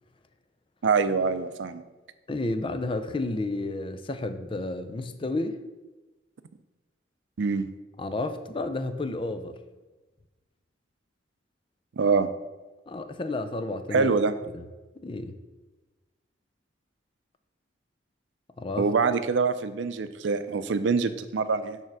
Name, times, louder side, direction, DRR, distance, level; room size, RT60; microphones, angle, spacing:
voice 1, 0.8-1.8 7.4-7.7 12.0-12.3 13.9-14.3 18.8-21.8, right 4 dB, 85° right, 12 dB, 0.5 m, -25 dB
voice 2, 2.3-5.6 8.0-9.6 12.9-14.1 14.5-14.6 15.0-15.4 18.6-18.9, left 2 dB, 30° left, 9 dB, 0.5 m, -31 dB
6.6 x 3.5 x 6.1 m, 1.2 s
head